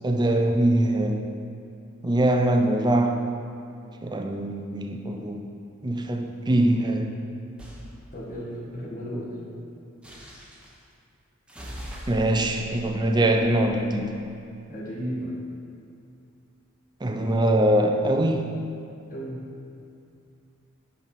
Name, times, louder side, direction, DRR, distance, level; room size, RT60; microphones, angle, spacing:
voice 1, 0.0-1.2 2.0-3.3 4.0-5.5 5.8-7.1 12.1-14.1 17.0-18.5, right 1 dB, 20° right, 4 dB, 0.5 m, -23 dB
sound 1, 7.6-7.9 10.0-10.8 11.5-14.1, equal, 5° right, 0.9 m, -41 dB
voice 2, 8.1-9.5 14.7-15.4 19.1-19.4, equal, 40° left, -6 dB, 1.7 m, -34 dB
8.9 x 4.2 x 5.9 m, 2.5 s
head